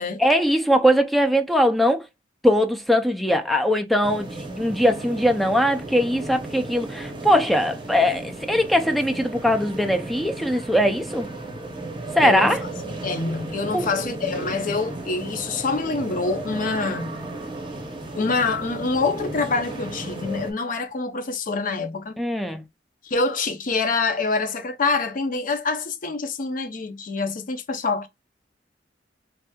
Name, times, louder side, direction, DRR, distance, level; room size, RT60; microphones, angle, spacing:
voice 1, 0.2-2.0 2.4-11.3 12.1-12.6 13.7-13.9 22.2-22.6, equal, ahead, 0.3 m, -21 dB
sound 1, 4.0-20.5, right 2 dB, 25° right, 0.7 m, -34 dB
voice 2, 12.2-12.6 13.0-17.1 18.1-22.2 23.0-28.1, left 4 dB, 50° left, 0.5 m, -26 dB
3.3 x 2.9 x 2.3 m
head